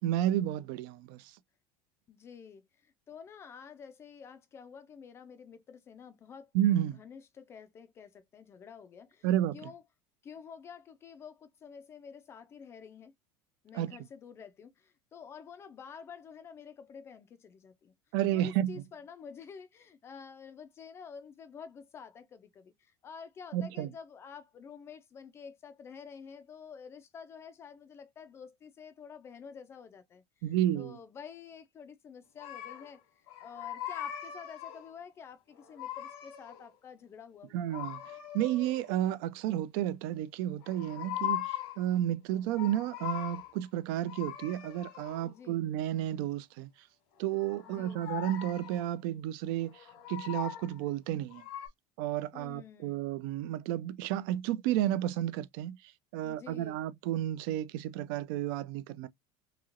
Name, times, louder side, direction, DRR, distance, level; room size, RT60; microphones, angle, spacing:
voice 1, 0.0-1.3 6.5-7.0 9.2-9.7 13.7-14.0 18.1-18.8 23.5-23.9 30.4-31.0 37.5-38.0 38.3-46.7 47.2-49.8 50.1-51.4 52.0-55.8 56.1-59.1, right 12 dB, 65° right, 0.4 m, -31 dB
voice 2, 2.1-6.5 6.9-9.8 10.2-13.1 13.6-17.9 18.3-33.0 33.4-37.6 45.2-45.6 47.6-48.1 52.3-53.1 56.2-56.8, left 6 dB, 20° left, 0.3 m, -49 dB
sound 1, 32.4-33.0 33.3-34.9 35.5-36.7 37.7-39.0 40.6-41.9 42.3-43.6 44.0-45.3 47.2-48.8 49.6-50.8 51.3-51.7, left 13 dB, 85° left, 1.2 m, -40 dB
3.0 x 2.8 x 2.4 m
cardioid pair, 175°, 13 cm